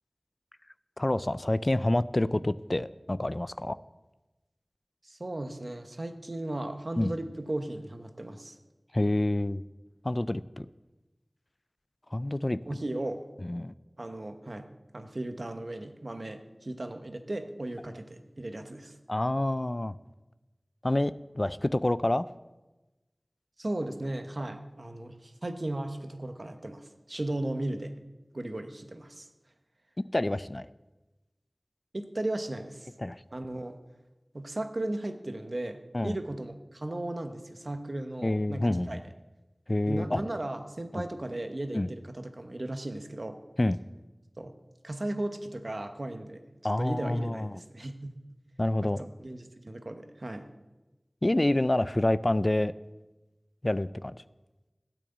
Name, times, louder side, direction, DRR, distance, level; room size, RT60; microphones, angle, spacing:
voice 1, 1.0-3.8 7.0-7.1 8.9-9.6 10.0-10.7 12.1-12.6 13.4-13.7 19.1-19.9 20.8-22.3 30.1-30.7 33.0-33.2 35.9-36.2 38.2-39.0 39.7-40.2 40.9-41.0 41.7-41.9 43.6-43.8 46.6-47.6 48.6-49.1 51.2-52.7 53.6-54.1, left 1 dB, 45° left, 16 dB, 0.4 m, -27 dB
voice 2, 5.0-8.5 12.7-13.2 14.0-14.7 14.9-18.9 23.6-27.9 28.3-29.3 31.9-32.9 33.3-33.8 34.3-39.0 39.9-43.4 44.4-44.5 44.8-46.4 46.8-48.2 48.8-50.5, right 1 dB, 65° right, 7 dB, 1.0 m, -36 dB
12.5 x 6.1 x 8.0 m, 1.1 s
wide cardioid pair, 40°, 0 cm